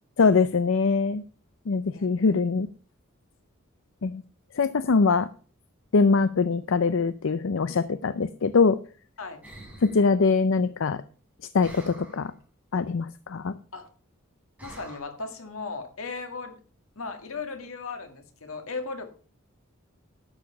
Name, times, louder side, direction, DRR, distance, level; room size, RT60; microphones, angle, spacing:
voice 1, 0.2-1.2 1.7-2.7 4.0-4.2 4.5-5.3 5.9-8.8 9.8-11.0 11.5-12.3 12.7-13.5, left 4 dB, 65° left, 13 dB, 0.5 m, -23 dB
voice 2, 1.9-2.4 9.2-9.4 13.7-13.9 14.6-16.6 17.0-19.1, left 4 dB, 85° left, 6 dB, 2.1 m, -37 dB
sound 1, 9.4-10.1 11.6-12.3 14.6-15.0, right 1 dB, 5° right, 4.1 m, -46 dB
11.5 x 7.4 x 5.8 m, 0.41 s
head